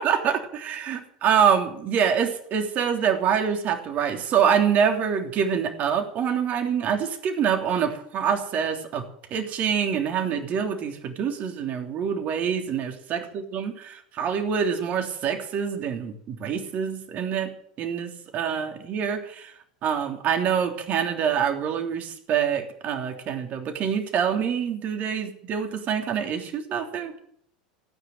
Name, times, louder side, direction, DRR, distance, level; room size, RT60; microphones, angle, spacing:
voice 1, 0.0-9.0 9.3-17.5 17.8-19.5 19.8-27.1, right 7 dB, 40° right, 5 dB, 3.3 m, -25 dB
16.5 x 9.5 x 9.1 m, 0.66 s
figure-of-eight pair, 85°, 4 cm